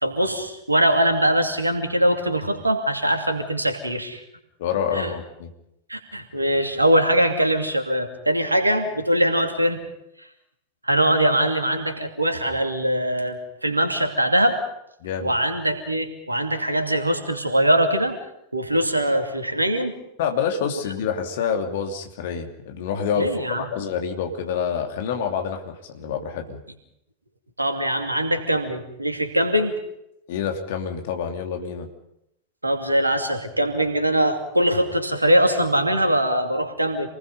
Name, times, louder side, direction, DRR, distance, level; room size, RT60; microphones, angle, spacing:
voice 1, 0.0-4.2 4.9-5.1 5.9-9.8 10.8-14.6 15.2-18.2 18.5-19.9 23.2-23.6 27.6-29.8 32.6-37.1, right 1 dB, 85° right, 5 dB, 2.7 m, -22 dB
voice 2, 4.6-5.5 15.0-15.3 20.2-23.3 23.6-26.6 30.3-31.9, left 7 dB, 55° left, 4 dB, 2.8 m, -27 dB
27.5 x 20.0 x 5.5 m, 0.81 s
figure-of-eight pair, 90°, 0 cm